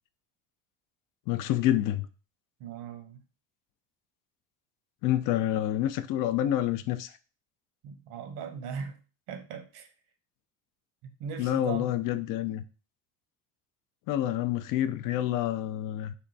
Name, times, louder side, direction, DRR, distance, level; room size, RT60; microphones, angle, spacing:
voice 1, 1.3-2.1 5.0-7.1 11.4-12.6 14.1-16.1, left 12 dB, 60° left, 0.5 m, -28 dB
voice 2, 2.6-3.2 7.8-9.0 9.3-9.9 11.2-11.9, right 6 dB, 80° right, 0.9 m, -39 dB
3.6 x 2.2 x 3.9 m
cardioid pair, 110°, 37 cm